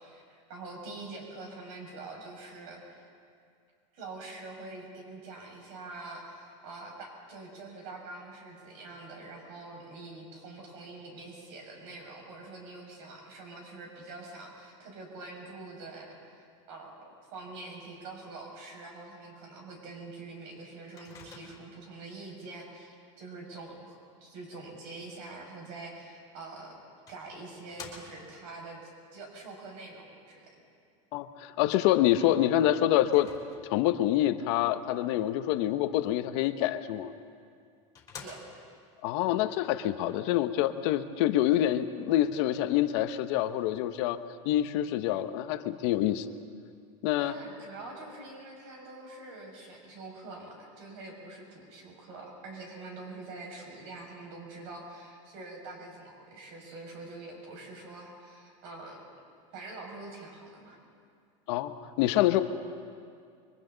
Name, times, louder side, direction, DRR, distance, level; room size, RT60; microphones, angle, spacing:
voice 1, 0.0-3.0 3.9-26.8 27.1-30.5 38.2-38.4 47.2-59.1 59.5-60.8, right 3 dB, 55° right, 0 dB, 6.2 m, -45 dB
Microwave oven, 21.0-21.9 26.2-26.3 27.1-28.4 33.0-33.9 37.1-37.2 37.6-37.7 37.9-38.8, left 5 dB, 20° left, 3.4 m, -48 dB
voice 2, 31.1-33.3 33.6-37.1 39.0-44.2 44.4-46.3 47.0-47.3 61.5-62.4, left 13 dB, 55° left, 9 dB, 1.0 m, -26 dB
29.5 x 23.5 x 4.0 m, 2.3 s
supercardioid pair, 160°, 17 cm